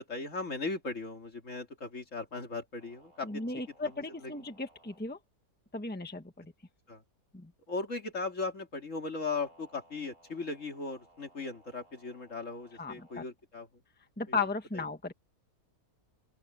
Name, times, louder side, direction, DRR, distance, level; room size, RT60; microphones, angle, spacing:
voice 1, 0.0-3.4 4.2-4.3 6.9-7.0 7.7-13.7 14.3-14.4 14.7-14.8, left 3 dB, 50° left, 2.9 m, -37 dB
sound 1, 2.8-5.1 9.3-13.2, right 1 dB, 65° right, 7.5 m, -62 dB
voice 2, 3.2-5.2 5.7-6.5 7.3-7.5 12.8-13.2 14.2-15.1, left 3 dB, 5° left, 1.4 m, -36 dB
open air
omnidirectional pair, 1.6 m